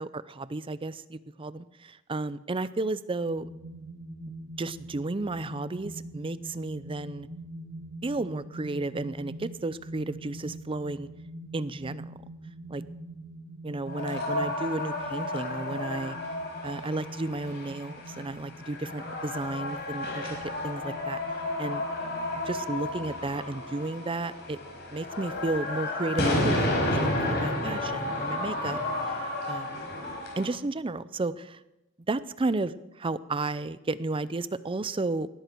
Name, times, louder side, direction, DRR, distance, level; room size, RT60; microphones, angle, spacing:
voice 1, 0.0-3.5 4.6-7.3 8.0-11.1 11.5-12.1 12.7-12.8 13.6-16.2 16.6-20.4 20.6-21.2 21.6-21.8 22.5-24.6 24.9-29.9 30.4-31.6 32.1-32.7 33.0-35.3, right 2 dB, 25° right, 16 dB, 0.5 m, -33 dB
sound 1, 3.3-22.6, right 1 dB, 55° right, 1.9 m, -44 dB
sound 2, 13.9-30.5, left 1 dB, 55° left, 4.9 m, -32 dB
19.0 x 13.0 x 4.6 m, 0.93 s
head